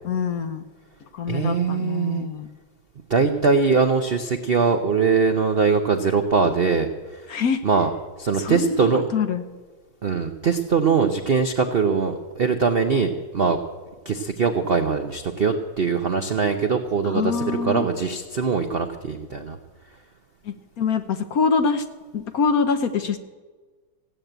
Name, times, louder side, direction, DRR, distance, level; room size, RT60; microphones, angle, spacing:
voice 1, 0.0-0.6 1.1-2.5 7.3-7.6 8.4-9.4 17.1-17.9 20.4-21.8 22.1-23.2, left 5 dB, 60° left, 9 dB, 1.0 m, -24 dB
voice 2, 1.3-2.2 3.1-7.4 7.6-7.9 8.2-9.1 10.0-13.6 14.0-19.6, right 5 dB, 60° right, 6 dB, 0.6 m, -22 dB
16.0 x 8.9 x 8.0 m, 1.3 s
omnidirectional pair, 2.2 m